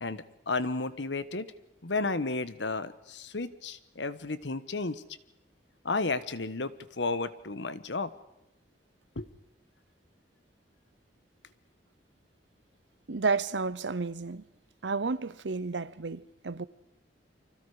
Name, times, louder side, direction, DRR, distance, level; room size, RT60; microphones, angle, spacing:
voice 1, 0.0-1.5 1.8-5.0 5.8-8.1 9.1-9.3, left 3 dB, 85° left, 1.3 m, -32 dB
voice 2, 13.1-14.4 14.8-16.7, right 4 dB, 90° right, 0.8 m, -31 dB
30.0 x 25.0 x 5.0 m
head